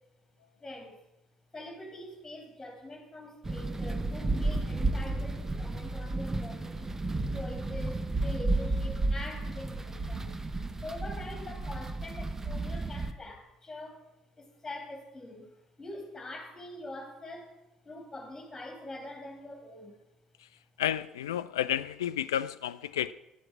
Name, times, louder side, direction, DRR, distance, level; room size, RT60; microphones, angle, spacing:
voice 1, 0.6-1.0 1.5-6.9 7.3-10.3 10.8-14.1 14.4-17.6 17.8-20.0, left 1 dB, 15° left, 2.9 m, -44 dB
sound 1, 3.4-13.1, right 2 dB, 20° right, 0.8 m, -32 dB
voice 2, 20.8-23.1, left 11 dB, 75° left, 0.4 m, -31 dB
11.5 x 7.6 x 6.0 m
figure-of-eight pair, 55°, 2 cm